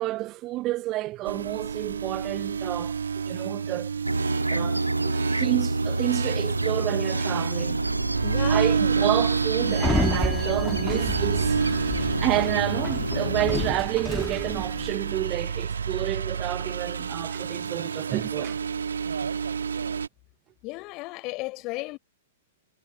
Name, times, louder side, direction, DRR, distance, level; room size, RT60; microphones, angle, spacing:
voice 1, 0.0-3.0 3.2-3.9 4.5-7.8 8.5-11.6 11.9-18.6, right 17 dB, 30° right, 0.6 m, -30 dB
sound 1, 1.2-20.1, right 6 dB, 70° right, 1.2 m, -30 dB
sound 2, 4.0-13.7, right 1 dB, 85° right, 1.4 m, -28 dB
voice 2, 8.2-9.1 20.6-22.0, left 23 dB, 35° left, 3.9 m, -34 dB
Sliding door, 9.7-14.9, left 2 dB, 5° left, 1.6 m, -31 dB
figure-of-eight pair, 105°, 0 cm